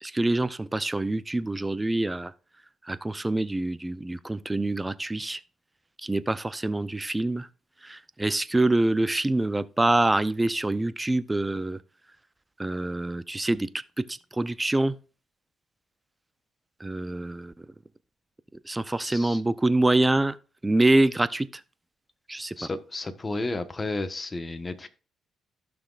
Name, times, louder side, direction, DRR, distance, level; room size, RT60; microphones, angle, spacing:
voice 1, 0.0-2.3 2.9-5.4 6.0-7.5 7.8-11.8 12.6-13.7 14.0-15.0 16.8-17.5 18.7-20.4 20.6-21.5 22.3-22.5, right 2 dB, 15° right, 0.5 m, -25 dB
voice 2, 19.0-19.4 22.6-24.9, left 2 dB, 25° left, 1.1 m, -32 dB
15.0 x 6.1 x 2.4 m
cardioid pair, 90°, 0 cm